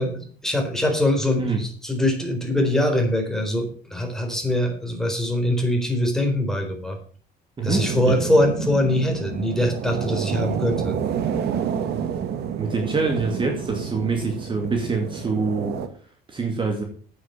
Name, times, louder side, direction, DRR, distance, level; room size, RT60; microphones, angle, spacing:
voice 1, 0.0-7.0 7.6-11.0, left 1 dB, 5° left, 2 dB, 4.0 m, -23 dB
voice 2, 7.6-8.2 12.6-15.8 16.3-16.8, right 4 dB, 30° right, 3 dB, 2.5 m, -25 dB
sound 1, 7.7-15.9, right 8 dB, 75° right, 1.6 m, -29 dB
8.8 x 8.1 x 6.9 m, 0.43 s
cardioid pair, 110°, 17 cm